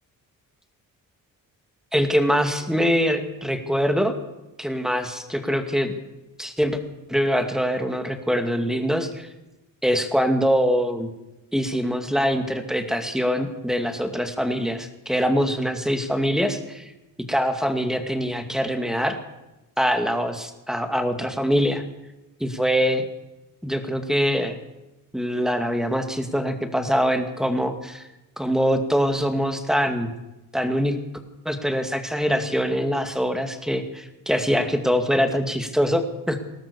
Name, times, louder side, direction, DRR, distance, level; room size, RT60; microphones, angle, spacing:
voice 1, 1.9-4.1 4.6-5.9 6.4-6.8 7.1-9.3 9.8-11.1 11.5-16.6 17.3-19.2 19.8-21.8 22.4-23.1 23.6-24.6 25.1-28.0 28.4-30.1 30.5-31.0 31.5-36.4, equal, ahead, 7 dB, 2.3 m, -23 dB
21.0 x 17.5 x 7.1 m, 1.0 s
cardioid pair, 125°, 35 cm